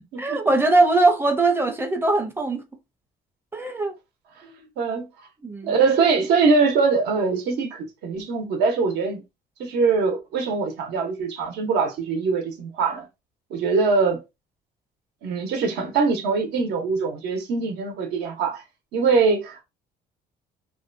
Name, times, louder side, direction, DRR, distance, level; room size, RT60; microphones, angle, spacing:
voice 1, 0.2-2.6 3.5-4.0 4.4-4.7 5.4-5.8, right 2 dB, 15° right, 0.5 m, -21 dB
voice 2, 4.8-5.1 5.6-9.2 9.6-13.1 13.5-14.2 15.2-18.6 18.9-19.6, right 4 dB, 80° right, 0.9 m, -22 dB
2.6 x 2.2 x 2.5 m
cardioid pair, 110°, 17 cm